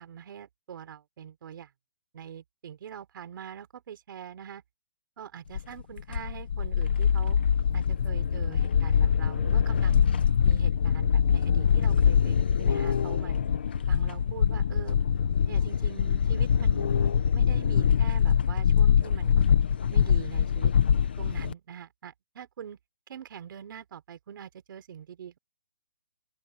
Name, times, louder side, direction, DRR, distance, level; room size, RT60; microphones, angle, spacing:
voice 1, 0.0-1.7 2.1-4.6 5.2-7.4 7.7-10.1 10.4-13.4 13.9-15.0 15.5-17.0 17.3-19.4 19.9-20.7 21.2-22.8 23.1-25.4, right 8 dB, 35° right, 5.0 m, -43 dB
sound 1, 5.5-21.5, left 7 dB, 15° left, 0.5 m, -24 dB
open air
hypercardioid pair, 175°, 19 cm